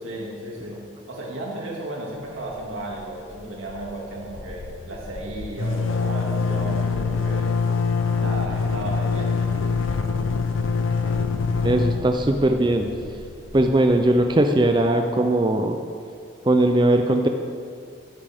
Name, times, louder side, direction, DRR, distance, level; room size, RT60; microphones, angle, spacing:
voice 1, 0.0-7.5 8.2-9.5, right 1 dB, 90° right, -3 dB, 2.2 m, -34 dB
sound 1, 2.6-3.0 3.3-3.4 3.7-14.4, left 4 dB, 85° left, 0.6 m, -25 dB
voice 2, 11.6-12.9 13.5-15.8 16.4-17.3, right 1 dB, 25° right, 5 dB, 0.4 m, -19 dB
13.5 x 8.5 x 3.5 m, 2.3 s
head